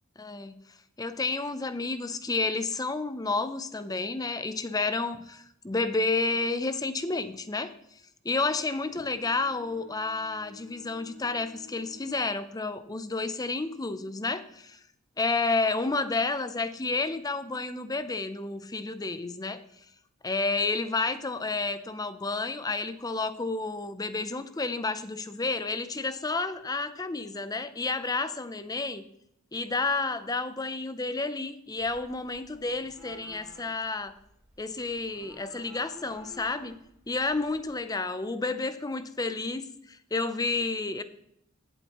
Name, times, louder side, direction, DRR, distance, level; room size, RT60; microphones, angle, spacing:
voice 1, 0.2-0.6 1.0-7.7 8.2-14.8 15.2-19.6 20.2-29.0 29.5-34.1 34.6-36.8 37.1-41.0, left 3 dB, 15° left, 12 dB, 0.6 m, -30 dB
Bowed string instrument, 8.7-13.0, left 5 dB, 75° left, 2.4 m, -53 dB
sound 1, 31.8-37.8, left 1 dB, 5° right, 2.4 m, -53 dB
15.0 x 8.0 x 3.0 m, 0.75 s
head